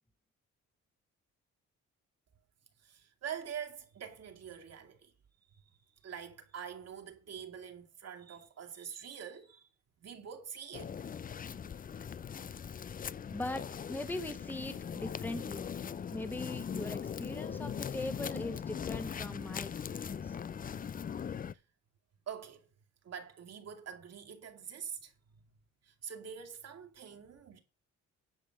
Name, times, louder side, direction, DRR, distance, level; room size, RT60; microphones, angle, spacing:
voice 1, 2.8-5.1 5.5-9.7 10.0-10.9 22.3-22.7 23.0-25.1 25.8-27.6, right 8 dB, 55° right, 2.5 m, -45 dB
sound 1, 10.7-21.5, left 7 dB, 30° left, 0.5 m, -40 dB
voice 2, 13.3-15.7 16.1-20.4, left 1 dB, 5° left, 1.3 m, -41 dB
10.5 x 5.2 x 7.8 m
cardioid pair, 90°, 30 cm